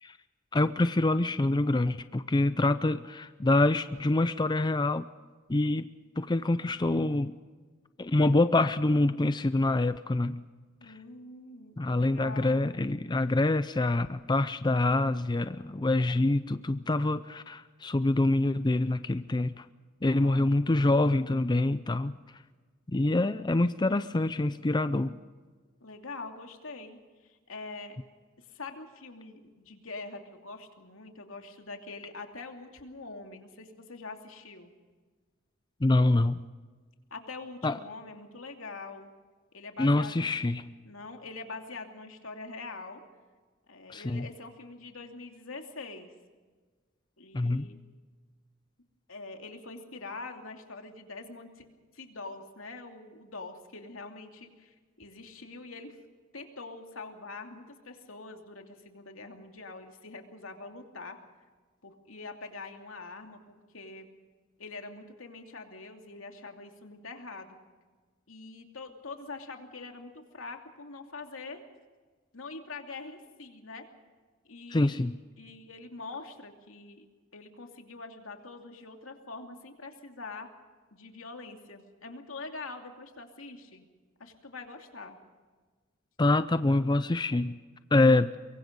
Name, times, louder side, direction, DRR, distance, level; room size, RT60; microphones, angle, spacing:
voice 1, 0.5-5.1 5.5-5.9 6.2-7.3 8.0-10.4 10.9-11.0 11.8-19.6 20.0-22.2 22.9-25.2 35.8-36.4 37.6-37.8 39.8-40.7 43.9-44.3 47.3-47.7 74.7-75.2 86.2-87.6 87.9-88.3, left 2 dB, 20° left, 12 dB, 0.5 m, -26 dB
voice 2, 10.8-12.6 20.2-20.5 25.8-28.0 28.4-34.7 37.1-39.1 39.5-40.4 40.8-43.0 43.7-46.1 47.2-47.8 49.1-51.6 51.9-56.0 56.3-61.2 61.8-64.1 64.6-67.6 68.3-71.6 72.3-73.9 74.4-75.0 75.4-77.0 77.3-80.5 80.9-83.9 84.2-85.2, left 3 dB, 80° left, 4 dB, 2.7 m, -44 dB
23.5 x 23.5 x 5.3 m, 1.4 s
head